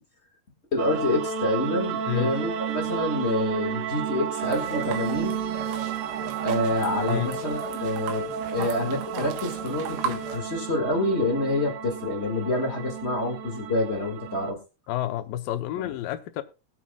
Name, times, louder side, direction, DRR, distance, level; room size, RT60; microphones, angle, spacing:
voice 1, 0.7-5.4 6.4-8.3 8.5-14.6 15.8-15.9, left 2 dB, 40° left, 1 dB, 0.9 m, -27 dB
sound 1, 0.8-14.5, right 8 dB, 70° right, 2.4 m, -32 dB
sound 2, 4.4-10.4, right 8 dB, 90° right, 3.2 m, -36 dB
voice 2, 14.9-16.4, left 13 dB, 80° left, 11 dB, 2.3 m, -29 dB
21.0 x 7.4 x 2.3 m, 0.29 s
omnidirectional pair, 4.4 m